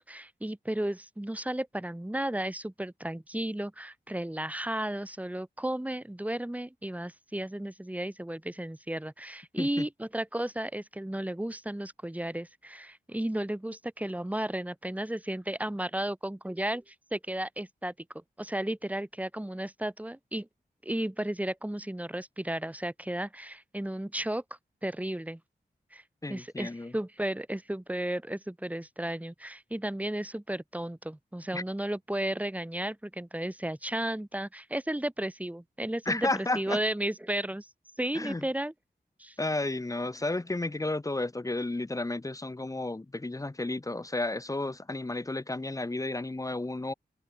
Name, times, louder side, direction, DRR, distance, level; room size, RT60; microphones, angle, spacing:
voice 1, 0.0-20.5 20.8-24.4 24.8-25.4 25.9-26.0 26.3-37.7 38.0-38.7 39.2-39.3, right 1 dB, 10° right, 2.6 m, -34 dB
voice 2, 26.2-26.9 31.5-31.6 36.1-36.8 38.1-38.5 39.4-46.9, left 2 dB, 20° left, 1.2 m, -32 dB
wide cardioid pair, 100°, 17 cm